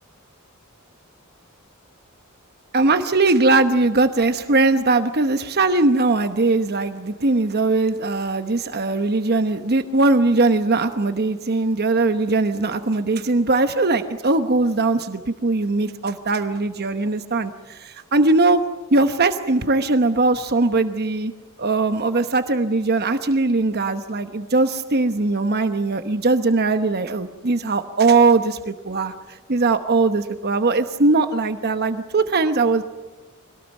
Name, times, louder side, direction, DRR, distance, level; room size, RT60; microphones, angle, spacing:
voice 1, 2.7-18.6 18.9-21.3 21.6-29.1 29.5-32.8, right 3 dB, 50° right, 9 dB, 1.0 m, -20 dB
25.0 x 18.5 x 9.1 m, 1.3 s
head